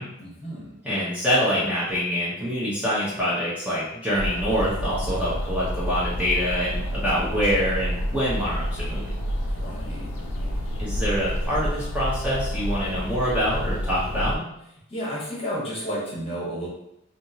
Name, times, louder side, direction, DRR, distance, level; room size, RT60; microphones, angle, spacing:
voice 1, 0.2-0.8 9.4-10.6 14.9-16.7, equal, 25° left, -5 dB, 0.9 m, -33 dB
voice 2, 0.8-9.2 10.8-14.5, equal, 5° right, -9 dB, 0.8 m, -25 dB
sound 1, 4.1-14.4, equal, 75° left, 0.5 m, -29 dB
3.5 x 2.9 x 2.7 m, 0.79 s
head